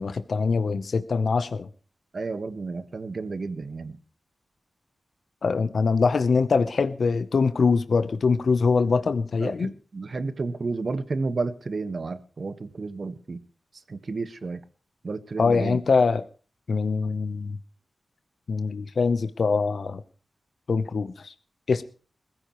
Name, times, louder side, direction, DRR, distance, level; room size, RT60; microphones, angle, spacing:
voice 1, 0.0-1.7 5.4-9.7 15.4-16.2 16.7-17.6 18.5-20.0 20.7-21.3 21.7-21.8, left 4 dB, 70° left, 0.8 m, -23 dB
voice 2, 2.1-4.0 9.4-13.4 13.9-14.6 15.0-15.8, right 3 dB, 55° right, 1.4 m, -31 dB
22.0 x 15.0 x 3.1 m
wide cardioid pair, 100°, 0 cm